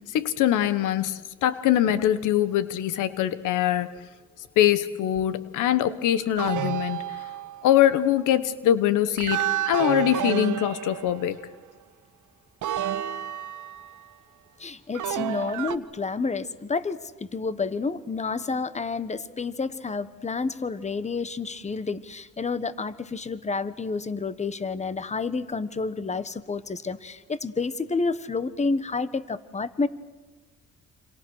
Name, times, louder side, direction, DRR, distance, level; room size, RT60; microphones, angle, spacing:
voice 1, 0.1-3.9 4.6-7.0 7.6-11.4, left 11 dB, 90° left, 1.2 m, -23 dB
sound 1, 6.4-7.8 9.2-11.5 12.6-14.0 14.9-15.8, right 11 dB, 75° right, 1.3 m, -30 dB
voice 2, 14.6-29.9, left 4 dB, 25° left, 1.3 m, -29 dB
27.5 x 27.0 x 6.4 m
cardioid pair, 90°, 30 cm